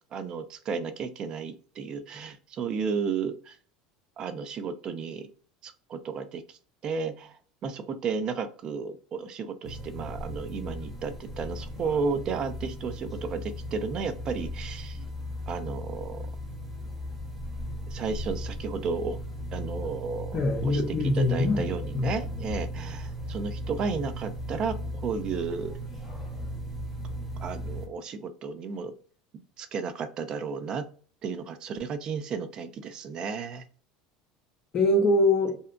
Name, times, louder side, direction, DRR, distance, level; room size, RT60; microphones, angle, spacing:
voice 1, 0.1-3.6 4.2-5.3 5.6-6.6 6.8-7.4 7.6-15.0 15.5-16.2 17.9-19.2 19.5-20.8 21.1-25.7 27.4-28.9 29.6-30.9 31.2-33.6, right 5 dB, 40° right, 0.4 m, -33 dB
sound 1, 9.6-27.8, equal, 10° right, 0.7 m, -37 dB
voice 2, 20.3-22.2 34.7-35.6, left 2 dB, 40° left, 0.6 m, -24 dB
2.7 x 2.2 x 2.4 m
supercardioid pair, 115°, 2 cm